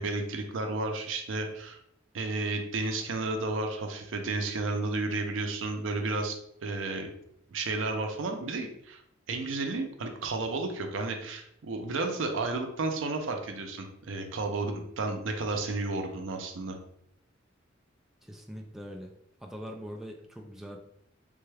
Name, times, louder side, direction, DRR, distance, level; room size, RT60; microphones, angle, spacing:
voice 1, 0.0-1.8 2.1-7.1 7.5-9.0 9.3-16.8, right 3 dB, 75° right, 4 dB, 0.5 m, -32 dB
voice 2, 18.2-19.1 19.4-20.8, equal, ahead, 1 dB, 0.3 m, -42 dB
3.4 x 2.3 x 3.3 m, 0.74 s
head